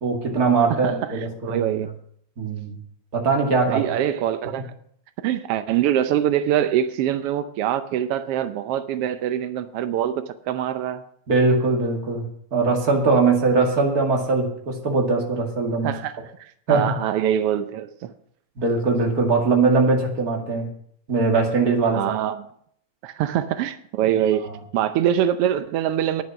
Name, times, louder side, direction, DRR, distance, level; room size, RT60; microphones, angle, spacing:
voice 1, 0.0-1.7 2.4-2.8 3.1-3.8 11.3-12.2 12.5-15.9 16.7-16.9 18.6-20.7 21.1-22.2 24.4-24.6, right 4 dB, 30° right, 2.4 m, -21 dB
voice 2, 0.7-1.2 1.5-1.9 3.7-4.7 5.2-11.0 15.8-18.1 21.9-22.5 23.0-24.5 24.7-26.2, right 10 dB, 90° right, 1.3 m, -24 dB
10.5 x 10.5 x 6.0 m
omnidirectional pair, 3.5 m